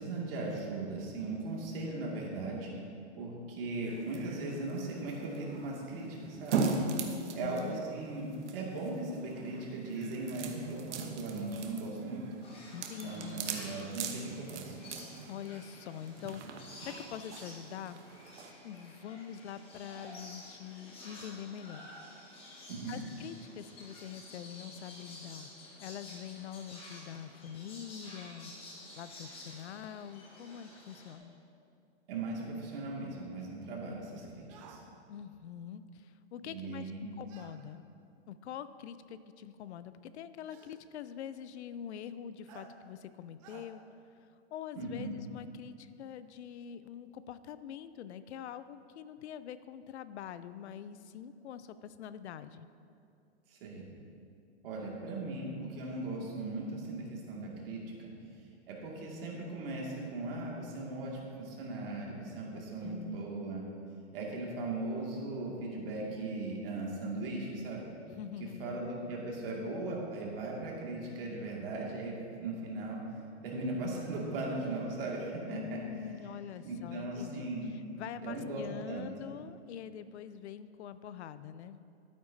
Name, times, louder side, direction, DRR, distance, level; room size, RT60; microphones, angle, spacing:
voice 1, 0.0-2.7 3.2-6.7 7.3-12.2 13.0-14.8 22.7-23.0 32.1-34.8 36.4-37.1 44.7-45.2 53.5-53.9 54.6-58.1 58.7-63.6 64.1-67.8 68.4-72.1 72.4-73.0 73.4-75.8 76.6-77.7 78.2-79.0, right 2 dB, 55° right, -3 dB, 2.2 m, -38 dB
sound 1, 3.9-18.5, right 4 dB, 80° right, 1.0 m, -40 dB
voice 2, 7.1-7.8 12.7-13.4 15.3-16.6 16.8-18.0 18.6-21.9 22.9-25.5 25.8-28.5 29.0-31.4 35.1-37.9 38.3-43.8 44.5-52.7 62.5-63.3 68.1-68.9 75.5-81.8, left 9 dB, 70° left, 14 dB, 0.5 m, -44 dB
sound 2, 12.4-31.2, left 1 dB, 15° left, 1.0 m, -51 dB
sound 3, 34.5-34.8 37.3-37.6 38.8-38.9 40.5-40.8 42.5-42.7 43.4-43.7, right 7 dB, 30° right, 0.6 m, -54 dB
12.0 x 8.9 x 2.7 m, 2.5 s
hypercardioid pair, 160°, 34 cm